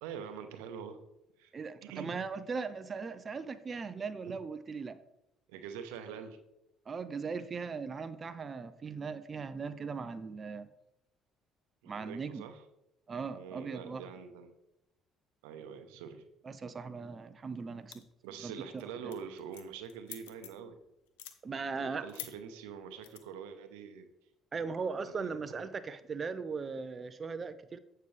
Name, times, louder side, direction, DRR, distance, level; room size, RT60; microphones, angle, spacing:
voice 1, 0.0-1.0 1.4-1.5 1.8-2.2 5.5-6.4 11.8-12.6 13.3-14.5 15.4-16.2 18.2-20.8 21.7-24.1 25.0-25.4, right 7 dB, 85° right, 8 dB, 0.8 m, -45 dB
voice 2, 1.5-5.0 6.9-10.7 11.9-12.4 13.1-14.0 16.4-18.0 18.4-18.5 19.0-19.1 21.4-22.0 24.5-27.8, right 5 dB, 40° right, 11 dB, 0.6 m, -38 dB
sound 1, 17.9-18.3 18.6-18.8 19.1-20.7 21.1-21.4 22.1-22.3 23.0-23.2, left 12 dB, 90° left, 0.7 m, -46 dB
8.5 x 6.7 x 3.3 m, 0.84 s
supercardioid pair, 65°, 0 cm